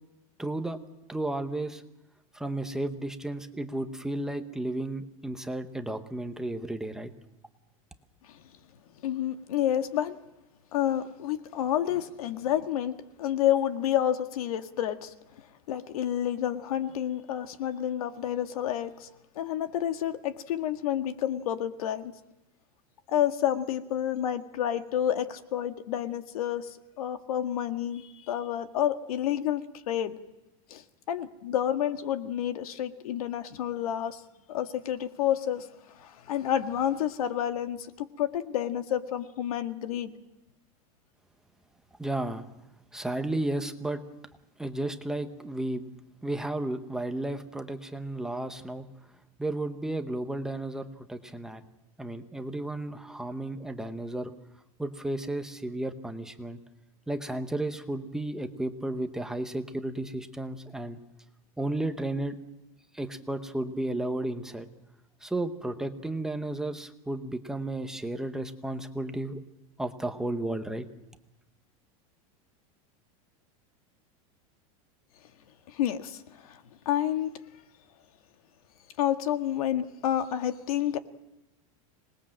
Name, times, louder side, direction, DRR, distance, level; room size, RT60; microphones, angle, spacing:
voice 1, 0.4-0.8 1.1-1.8 2.3-7.1 42.0-42.5 42.9-44.0 44.6-45.9 46.2-48.9 49.4-51.6 52.0-54.3 54.8-56.6 57.1-61.0 61.6-62.4 62.9-64.7 65.2-69.4 69.8-70.9, right 1 dB, 5° right, 6 dB, 0.9 m, -33 dB
voice 2, 9.0-10.2 10.7-15.1 15.7-19.1 19.4-22.1 23.1-30.2 30.7-30.8 31.1-34.2 34.5-40.1 75.7-77.3 79.0-81.0, left 10 dB, 90° left, 8 dB, 1.8 m, -29 dB
26.0 x 20.0 x 7.6 m, 0.92 s
supercardioid pair, 175°, 18 cm